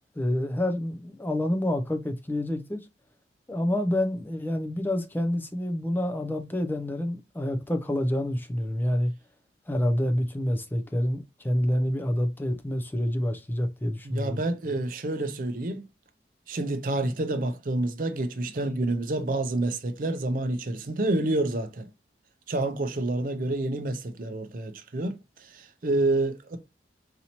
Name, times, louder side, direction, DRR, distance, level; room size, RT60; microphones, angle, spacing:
voice 1, 0.1-2.8 3.5-9.1 9.7-14.4, left 1 dB, 10° left, 0.4 m, -27 dB
voice 2, 14.0-15.8 16.5-21.9 22.5-26.6, right 2 dB, 50° right, 0.5 m, -28 dB
4.1 x 2.8 x 2.8 m
head